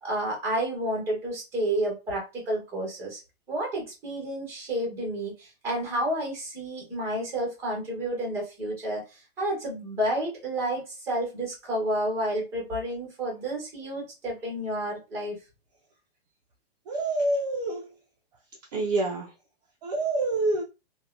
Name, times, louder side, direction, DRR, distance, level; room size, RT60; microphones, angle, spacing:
voice 1, 0.0-3.2 3.5-15.4, right 1 dB, 10° right, -2 dB, 1.0 m, -30 dB
voice 2, 16.9-17.9 18.7-19.3 19.8-20.6, right 2 dB, 45° right, -1 dB, 0.4 m, -26 dB
2.7 x 2.2 x 2.4 m, 0.27 s
hypercardioid pair, 165°, 31 cm